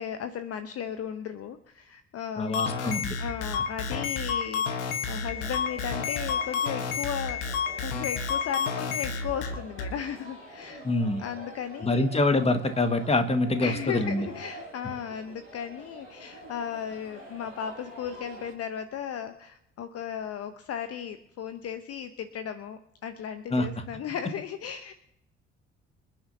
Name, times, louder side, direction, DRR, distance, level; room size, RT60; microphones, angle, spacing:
voice 1, 0.0-2.6 3.2-7.5 7.8-10.9 11.2-12.1 13.6-24.9, left 8 dB, 40° left, 10 dB, 0.9 m, -36 dB
voice 2, 2.4-3.2 10.8-11.2 11.8-14.2 23.5-23.7, left 2 dB, 15° left, 7 dB, 1.7 m, -25 dB
sound 1, 2.5-9.9, left 5 dB, 70° left, 1.4 m, -30 dB
sound 2, 5.1-18.5, equal, 90° left, 3.2 m, -46 dB
27.0 x 10.0 x 2.8 m, 0.80 s
figure-of-eight pair, 50°, 35 cm